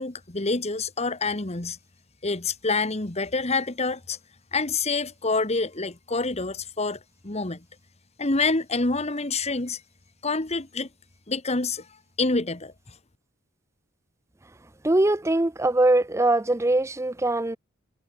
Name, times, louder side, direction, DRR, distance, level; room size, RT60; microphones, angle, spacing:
voice 1, 0.0-1.8 2.2-4.2 4.5-7.6 8.2-9.8 10.2-10.9 11.3-11.9 12.2-12.7, left 3 dB, 30° left, 1.5 m, -27 dB
voice 2, 14.8-17.6, right 2 dB, 15° right, 0.6 m, -22 dB
head